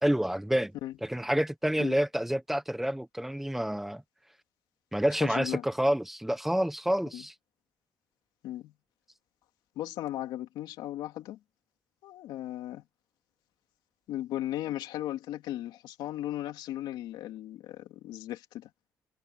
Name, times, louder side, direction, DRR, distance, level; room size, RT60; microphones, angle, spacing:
voice 1, 0.0-0.7 1.0-4.0 4.9-7.3, equal, 5° right, 0.9 m, -28 dB
voice 2, 5.2-5.6 7.1-7.3 8.4-8.7 9.7-11.4 12.0-12.8 14.1-18.7, left 13 dB, 90° left, 2.8 m, -36 dB
cardioid pair, 140°, 7 cm